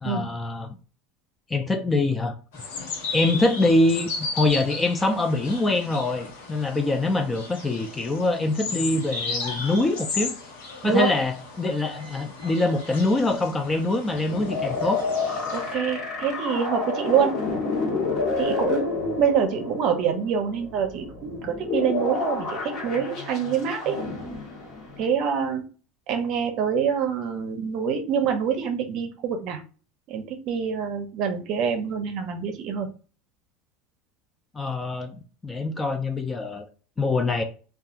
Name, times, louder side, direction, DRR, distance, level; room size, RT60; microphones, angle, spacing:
voice 1, 0.0-0.8 1.5-2.3 3.1-10.3 10.8-15.0 15.3-15.4 34.5-35.2 35.4-36.7 37.0-37.4, left 2 dB, 15° left, 0.3 m, -24 dB
sound 1, 2.5-15.7, left 4 dB, 85° left, 0.9 m, -35 dB
sound 2, 14.3-25.1, left 3 dB, 40° left, 1.0 m, -29 dB
voice 2, 15.5-17.4 18.4-23.9 25.0-25.7 26.1-29.6 30.1-32.9, right 7 dB, 50° right, 0.6 m, -26 dB
2.7 x 2.3 x 2.4 m
supercardioid pair, 140°, 0 cm